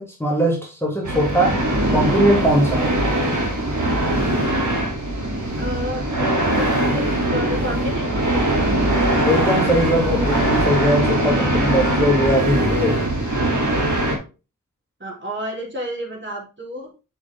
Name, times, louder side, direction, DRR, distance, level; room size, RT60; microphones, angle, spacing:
voice 1, 0.0-1.6 1.9-3.0 9.3-13.0, equal, 5° left, -2 dB, 2.3 m, -20 dB
sound 1, 1.0-14.2, right 1 dB, 60° right, 2.8 m, -21 dB
voice 2, 5.6-6.0 6.4-8.7 15.0-16.9, equal, 35° right, -3 dB, 3.8 m, -31 dB
7.1 x 6.3 x 3.6 m, 0.31 s
wide cardioid pair, 60°, 34 cm